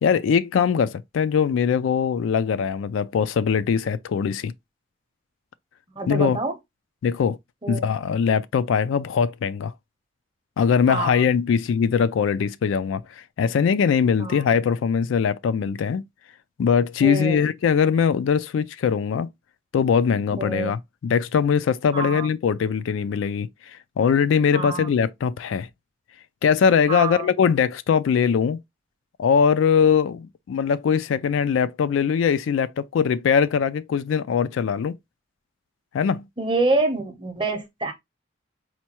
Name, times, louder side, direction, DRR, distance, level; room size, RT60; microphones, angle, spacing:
voice 1, 0.0-4.5 6.1-6.4 7.0-7.4 7.7-9.7 10.6-13.0 13.4-16.0 16.6-19.3 19.7-25.7 26.4-28.6 29.2-35.0 35.9-36.2, left 6 dB, 75° left, 0.3 m, -21 dB
voice 2, 5.9-6.6 7.6-7.9 10.9-11.2 14.2-14.5 17.0-17.5 20.4-20.7 21.9-22.3 24.5-24.9 26.9-27.3 36.4-37.9, right 3 dB, 25° right, 0.7 m, -26 dB
4.3 x 2.2 x 2.9 m
head